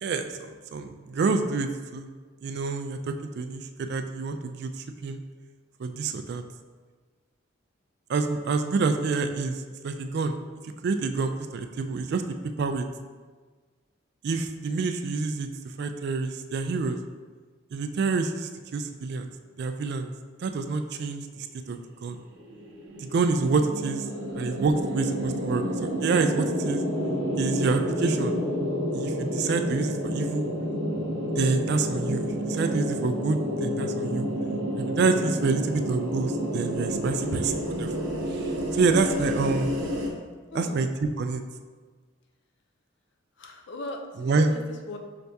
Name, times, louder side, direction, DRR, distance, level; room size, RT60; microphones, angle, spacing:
voice 1, 0.0-2.1 2.4-4.7 5.0-5.2 5.8-6.4 8.1-9.6 9.8-10.4 10.8-12.2 12.6-12.9 14.2-15.5 15.8-17.0 17.7-19.3 19.6-20.1 20.4-22.2 23.0-24.0 24.4-26.8 27.4-28.4 28.9-30.5 31.4-34.3 34.8-37.9 38.7-39.7 40.5-41.4 44.2-44.5, right 4 dB, 55° right, 7 dB, 0.3 m, -27 dB
sound 1, 22.3-40.1, equal, 75° right, 0.8 m, -29 dB
voice 2, 40.5-40.8 43.4-45.0, left 2 dB, 60° left, 4 dB, 0.5 m, -39 dB
5.6 x 3.4 x 2.7 m, 1.4 s
head